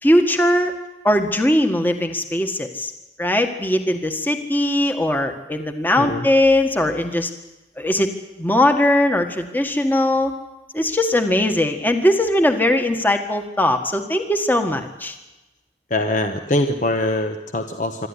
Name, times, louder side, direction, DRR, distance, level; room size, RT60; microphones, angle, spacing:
voice 1, 0.0-0.7 1.0-2.9 3.2-7.3 7.8-8.1 8.4-10.3 10.7-15.2, left 1 dB, 10° left, 5 dB, 1.6 m, -19 dB
voice 2, 15.9-18.1, left 1 dB, 45° left, 6 dB, 1.1 m, -23 dB
26.5 x 13.0 x 9.9 m, 1.0 s
head